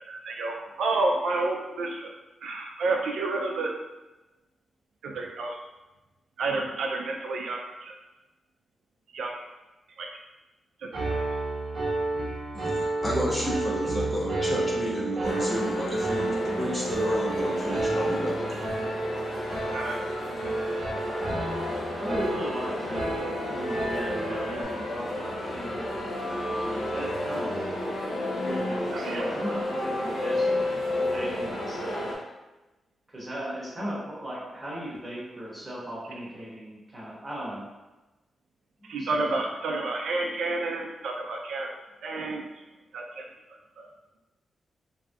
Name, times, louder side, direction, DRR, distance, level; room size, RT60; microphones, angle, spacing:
voice 1, 0.1-2.1 2.4-3.7 5.0-5.6 6.4-7.9 9.1-9.5 10.0-10.2 10.8-11.3 19.7-20.0 28.9-29.3 38.8-41.7 42.0-42.4 42.9-43.9, right 3 dB, 80° right, 1 dB, 0.3 m, -30 dB
Piano, 10.9-24.6, right 2 dB, 45° right, 0.9 m, -31 dB
voice 2, 12.5-18.3, equal, 20° left, -4 dB, 0.5 m, -31 dB
sound 1, 15.2-32.1, left 1 dB, 80° left, 0.6 m, -32 dB
voice 3, 20.3-20.7 21.9-23.1 23.5-25.9 26.6-27.6 28.4-32.1 33.1-37.7 38.8-39.2, right 1 dB, 10° right, -7 dB, 0.9 m, -37 dB
3.3 x 2.6 x 2.3 m, 1.1 s
wide cardioid pair, 170°, 0 cm